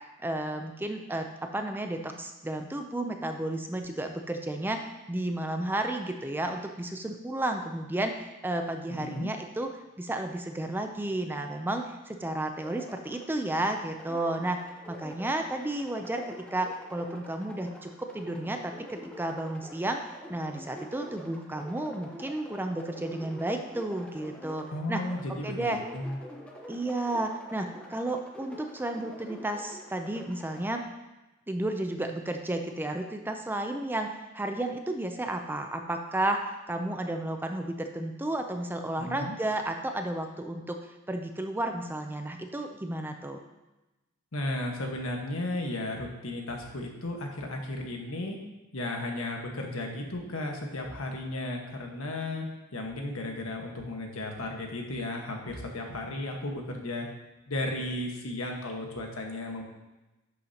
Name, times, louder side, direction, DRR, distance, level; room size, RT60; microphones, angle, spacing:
voice 1, 0.2-9.7 10.0-16.2 16.5-20.0 20.3-25.0 25.3-25.8 26.7-30.8 31.5-40.8 41.1-43.4, right 1 dB, 10° right, 5 dB, 0.5 m, -32 dB
voice 2, 9.0-9.3 24.7-26.2 39.0-39.3 44.3-48.4 48.7-52.5 52.7-57.1 57.5-59.6, left 1 dB, 70° left, 1 dB, 1.4 m, -34 dB
sound 1, 12.5-30.8, equal, 5° left, 0.9 m, -47 dB
11.0 x 6.6 x 2.8 m, 1.0 s
head